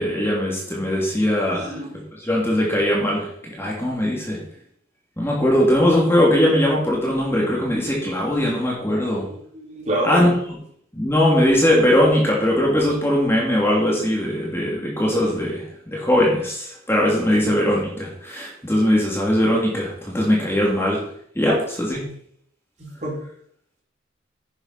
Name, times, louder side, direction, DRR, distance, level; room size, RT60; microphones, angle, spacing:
voice 1, 0.0-1.8 2.1-4.4 5.2-9.2 10.0-10.3 10.9-21.0 21.3-22.0, left 1 dB, 10° left, -4 dB, 3.0 m, -20 dB
voice 2, 1.5-2.0 9.3-10.3 17.4-17.5 22.8-23.2, right 1 dB, 35° right, -3 dB, 4.2 m, -28 dB
10.5 x 8.0 x 5.9 m, 0.63 s
head